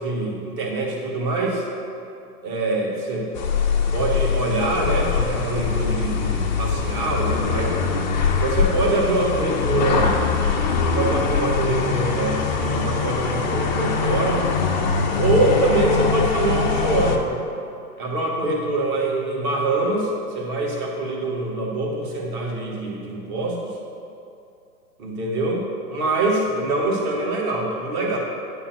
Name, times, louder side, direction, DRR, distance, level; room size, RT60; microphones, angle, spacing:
voice 1, 0.0-1.6 2.4-3.3 3.9-7.7 8.4-10.1 10.9-14.4 15.2-17.3 18.0-20.1 20.3-23.7 25.0-28.2, right 2 dB, 30° right, -1 dB, 1.4 m, -24 dB
sound 1, 3.3-17.2, left 5 dB, 30° left, 0.4 m, -23 dB
9.3 x 3.8 x 6.0 m, 2.7 s
hypercardioid pair, 140°, 47 cm